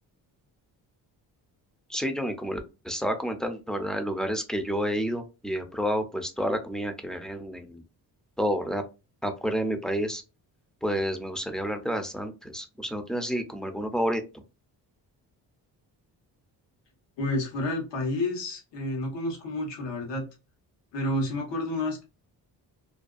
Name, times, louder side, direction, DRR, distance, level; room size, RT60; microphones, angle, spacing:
voice 1, 1.9-2.6 2.8-7.8 8.4-8.8 9.2-10.2 10.8-14.2, equal, ahead, 6 dB, 0.5 m, -29 dB
voice 2, 17.2-20.3 20.9-22.0, left 1 dB, 80° left, 0 dB, 1.2 m, -30 dB
2.6 x 2.2 x 2.3 m, 0.29 s
cardioid pair, 70°, 43 cm